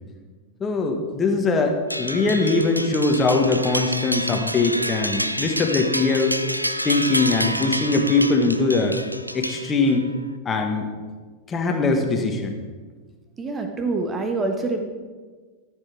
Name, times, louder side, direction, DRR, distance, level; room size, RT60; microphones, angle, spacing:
voice 1, 0.6-6.4 6.8-9.0 9.3-10.1 10.4-10.9 11.5-12.5, left 3 dB, 20° left, 3 dB, 1.5 m, -21 dB
sound 1, 1.9-10.1, equal, 90° right, 0.4 m, -28 dB
voice 2, 13.4-14.8, right 3 dB, 20° right, 4 dB, 1.2 m, -25 dB
13.0 x 6.7 x 4.6 m, 1.4 s
figure-of-eight pair, 90°, 0 cm